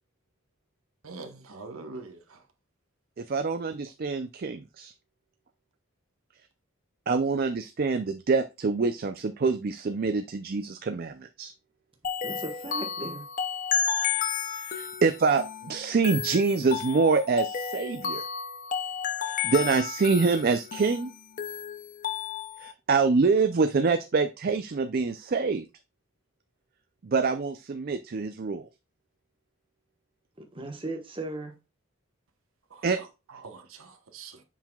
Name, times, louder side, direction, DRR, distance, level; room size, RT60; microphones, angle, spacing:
voice 1, 1.0-2.4 32.7-34.4, right 3 dB, 85° right, 1.1 m, -44 dB
voice 2, 3.2-4.9 7.1-11.5 14.6-18.2 19.2-21.1 22.6-25.6 27.0-28.7 32.8-33.0, right 4 dB, 45° right, 0.4 m, -26 dB
sound 1, 12.0-22.7, left 7 dB, 40° left, 0.5 m, -32 dB
voice 3, 12.2-13.3 30.4-31.5, right 2 dB, 25° right, 1.2 m, -37 dB
7.3 x 5.6 x 2.3 m
head